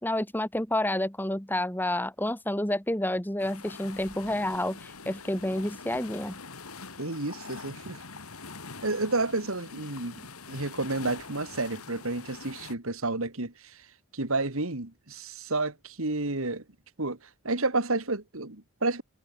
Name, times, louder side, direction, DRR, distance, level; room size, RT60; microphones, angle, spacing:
voice 1, 0.0-6.4, left 1 dB, 10° left, 1.9 m, -29 dB
sound 1, 3.4-12.7, left 4 dB, 75° left, 3.3 m, -44 dB
voice 2, 7.0-8.0 8.8-10.2 10.5-13.8 14.1-16.6 17.0-17.2 17.4-19.0, right 2 dB, 65° right, 2.4 m, -30 dB
head